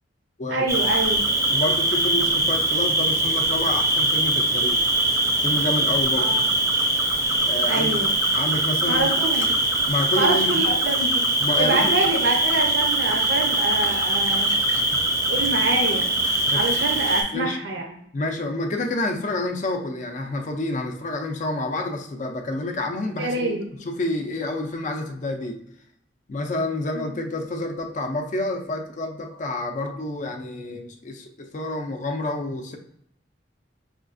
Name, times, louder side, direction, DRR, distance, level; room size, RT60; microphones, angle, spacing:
voice 1, 0.5-1.2 6.2-6.4 7.7-8.1 8.8-9.7 10.1-11.2 11.6-14.5 15.3-16.1 16.5-18.0 23.2-23.7 26.9-27.2, right 2 dB, 75° right, 1 dB, 0.7 m, -26 dB
Cricket, 0.7-17.2, right 1 dB, 15° right, 0.6 m, -22 dB
voice 2, 1.5-4.9 5.4-6.4 7.5-8.0 8.3-9.1 9.9-10.7 11.4-12.0 16.5-16.6 17.3-17.6 18.1-23.6 23.8-25.6 26.3-32.8, left 2 dB, 45° left, 4 dB, 0.4 m, -28 dB
4.9 x 2.3 x 2.5 m, 0.73 s
head